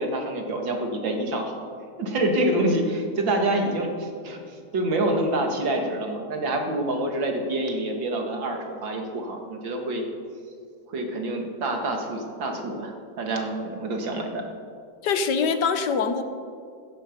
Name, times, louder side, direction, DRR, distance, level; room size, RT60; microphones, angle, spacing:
voice 1, 0.0-1.6 2.0-10.0 10.9-14.5, right 1 dB, 80° right, 3 dB, 2.6 m, -27 dB
voice 2, 15.0-16.2, left 5 dB, 65° left, 9 dB, 1.4 m, -23 dB
16.0 x 13.0 x 5.3 m, 2.3 s
omnidirectional pair, 2.0 m